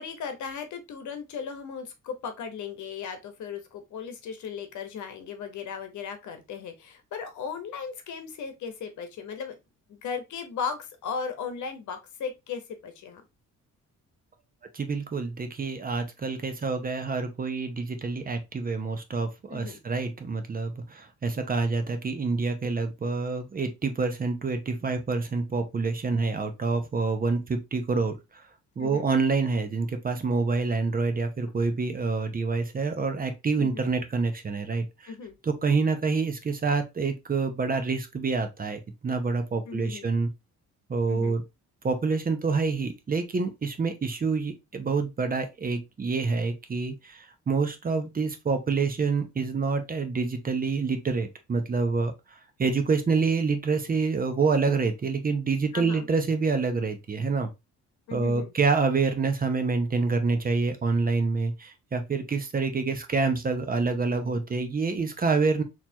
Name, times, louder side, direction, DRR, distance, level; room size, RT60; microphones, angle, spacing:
voice 1, 0.0-9.5 9.9-13.2 19.5-19.8 28.8-29.1 33.6-33.9 35.1-35.3 39.7-40.1 41.1-41.4 55.7-56.1 58.1-58.5, left 6 dB, 75° left, 1.0 m, -36 dB
voice 2, 14.7-28.2 28.8-35.1 35.4-40.3 40.9-41.4 41.8-52.1 52.6-57.5 58.1-65.6, right 4 dB, 30° right, 0.8 m, -27 dB
4.2 x 3.0 x 2.7 m
cardioid pair, 90°, 30 cm